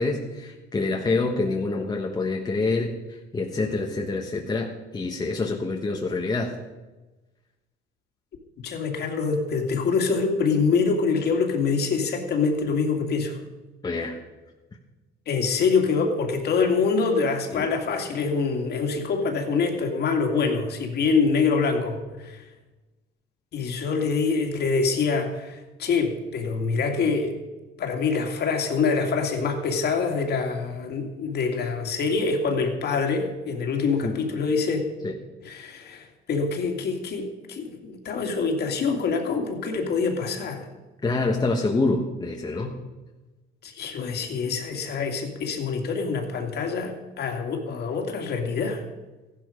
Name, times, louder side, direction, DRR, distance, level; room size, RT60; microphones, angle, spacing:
voice 1, 0.0-6.5 13.8-14.2 17.5-17.7 34.0-34.1 35.0-35.2 41.0-42.7, left 3 dB, 20° left, 1 dB, 1.4 m, -26 dB
voice 2, 8.6-13.4 15.3-22.4 23.5-27.3 27.8-34.9 35.4-40.7 43.6-48.8, left 4 dB, 50° left, 3 dB, 2.5 m, -25 dB
15.0 x 11.0 x 5.2 m, 1.2 s
cardioid pair, 115°, 21 cm